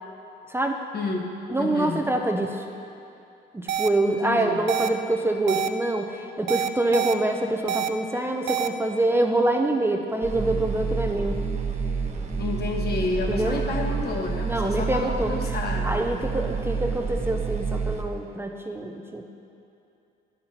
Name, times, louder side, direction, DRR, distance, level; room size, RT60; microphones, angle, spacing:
voice 1, 0.9-1.3 1.6-2.1 4.1-4.6 12.4-16.0, left 3 dB, 55° left, 1 dB, 1.3 m, -30 dB
voice 2, 1.5-2.7 3.5-11.4 13.3-13.6 14.4-15.6 15.8-19.2, right 2 dB, 10° right, 2 dB, 0.6 m, -25 dB
sound 1, 3.7-3.9 4.7-4.9 5.5-5.7 6.5-7.1 7.7-7.9 8.5-8.7, right 9 dB, 65° right, 0.4 m, -26 dB
sound 2, 10.2-18.0, right 5 dB, 35° right, 1.0 m, -29 dB
10.5 x 5.6 x 5.8 m, 2.6 s
cardioid pair, 90°, 20 cm